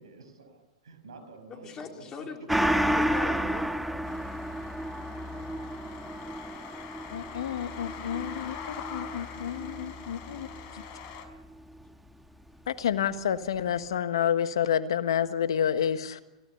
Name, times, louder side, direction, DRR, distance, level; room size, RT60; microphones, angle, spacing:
voice 1, 0.0-2.7, right 3 dB, 75° right, 8 dB, 5.8 m, -49 dB
voice 2, 1.6-3.7 7.0-7.2, left 5 dB, 25° left, 3 dB, 3.8 m, -39 dB
Gong, 2.5-11.5 11.8-11.9, equal, ahead, 1.6 m, -32 dB
sound 1, 4.0-11.3, left 7 dB, 45° left, 4.8 m, -44 dB
voice 3, 7.1-10.5 10.7-10.8 12.7-16.2, left 9 dB, 70° left, 12 dB, 1.4 m, -29 dB
29.5 x 16.5 x 7.0 m, 1.1 s
hypercardioid pair, 100°, 3 cm